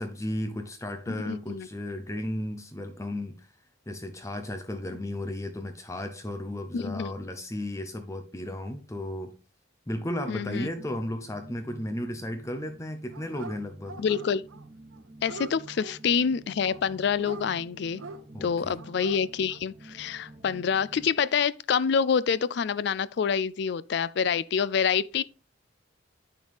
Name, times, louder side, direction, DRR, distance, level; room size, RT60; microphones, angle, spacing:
voice 1, 0.0-3.5 3.9-9.4 9.9-14.0 18.3-18.8, left 1 dB, 15° left, 0.7 m, -34 dB
voice 2, 1.1-1.7 6.7-7.1 10.3-10.7 14.0-14.5 15.2-18.0 18.4-25.2, left 6 dB, 55° left, 0.3 m, -27 dB
sound 1, 10.5-21.1, right 2 dB, 25° right, 0.5 m, -49 dB
Dog, 13.1-13.6 13.8-14.6 14.9-15.9 16.6-17.5 18.0-18.2 18.8-19.2 19.5-19.6, right 3 dB, 90° right, 0.8 m, -42 dB
8.8 x 6.3 x 3.4 m
head